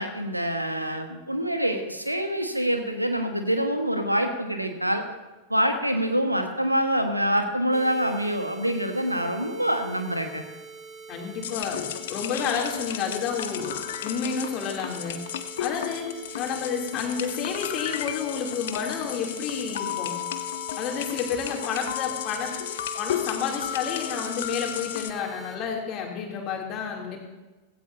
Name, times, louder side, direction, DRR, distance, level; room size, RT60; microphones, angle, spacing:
voice 1, 0.0-5.0 5.5-10.4, equal, 85° right, 6 dB, 1.4 m, -26 dB
sound 1, 7.7-25.6, right 5 dB, 20° right, 1.7 m, -44 dB
voice 2, 11.1-13.7 14.0-15.2 15.6-16.1 16.3-20.1 20.8-22.5 23.0-27.2, left 6 dB, 35° left, 0 dB, 3.0 m, -30 dB
sound 2, 11.4-25.1, left 11 dB, 60° left, 0.7 m, -34 dB
16.0 x 16.0 x 2.8 m, 1.2 s
figure-of-eight pair, 90°, 0 cm